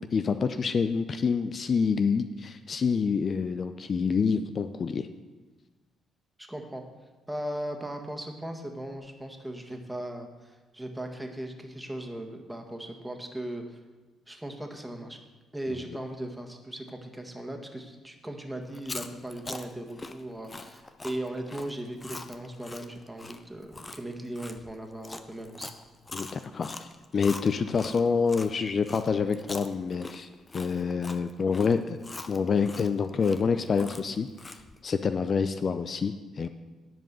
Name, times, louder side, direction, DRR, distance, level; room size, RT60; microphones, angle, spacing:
voice 1, 0.0-5.1 26.1-36.5, left 5 dB, 45° left, 10 dB, 0.5 m, -27 dB
voice 2, 6.4-6.8 7.3-13.8 14.3-15.2 15.5-25.7, right 1 dB, 10° right, 3 dB, 1.8 m, -38 dB
Chewing mastication, 18.7-28.5 28.8-34.8, left 3 dB, 25° left, 0.8 m, -43 dB
10.5 x 5.3 x 6.9 m, 1.3 s
hypercardioid pair, 45°, 0 cm